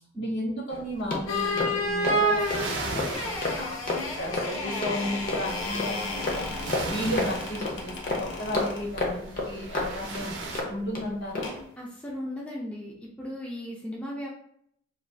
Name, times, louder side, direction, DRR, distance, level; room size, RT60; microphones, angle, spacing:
voice 1, 0.2-3.8 4.2-11.5, left 1 dB, 65° left, -2 dB, 1.0 m, -34 dB
sound 1, 0.7-11.0 11.3-11.6, left 2 dB, 45° left, 0.6 m, -33 dB
sound 2, 1.3-8.8 11.4-11.6, equal, 90° left, 0.6 m, -31 dB
sound 3, 1.3-10.6, right 2 dB, 70° right, 0.6 m, -39 dB
voice 2, 11.8-14.3, left 1 dB, 5° left, -4 dB, 0.4 m, -36 dB
2.5 x 2.2 x 3.2 m, 0.69 s
head